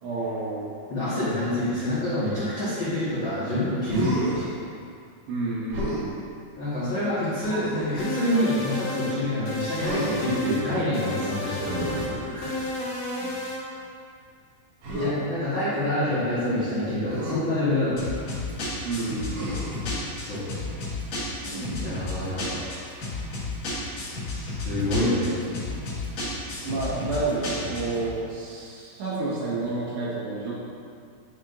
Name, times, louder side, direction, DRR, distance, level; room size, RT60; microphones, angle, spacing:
voice 1, 0.0-0.7 5.3-6.2 13.2-13.3 18.8-19.6 26.6-30.5, right 3 dB, 80° right, -7 dB, 3.5 m, -30 dB
voice 2, 0.9-4.4 6.6-11.9 12.3-12.6 15.0-18.0 20.2-20.4 21.8-22.6 24.3-25.4, left 1 dB, 75° left, -13 dB, 1.1 m, -27 dB
Human voice, 3.8-4.5 5.7-6.1 7.4-8.0 9.8-10.4 11.5-12.8 14.8-15.1 17.0-17.4 19.3-19.9 21.4-22.0, right 1 dB, 65° right, 1.8 m, -31 dB
sound 1, 8.0-9.2 9.5-10.7 10.9-12.1 12.4-13.6, left 1 dB, 90° left, 1.7 m, -32 dB
sound 2, 18.0-28.1, left 2 dB, 50° left, 2.4 m, -32 dB
11.0 x 4.5 x 2.5 m, 2.3 s
omnidirectional pair, 4.9 m